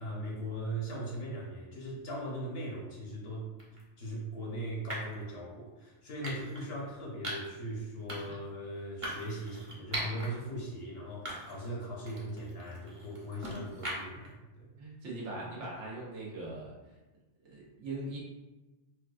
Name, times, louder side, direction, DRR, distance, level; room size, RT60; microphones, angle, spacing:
voice 1, 0.0-3.5 4.0-14.7, right 1 dB, 65° left, -3 dB, 1.0 m, -39 dB
sound 1, 3.6-3.8 4.9-5.2 6.2-6.7 7.2-7.6 8.1-8.4 9.0-10.3 10.7-10.8 11.3-11.7 12.1-14.3, right 1 dB, 35° right, 0.7 m, -40 dB
voice 2, 14.8-16.7 17.4-18.2, right 2 dB, 85° right, -5 dB, 1.2 m, -40 dB
4.4 x 2.2 x 2.4 m, 1.1 s
omnidirectional pair, 1.2 m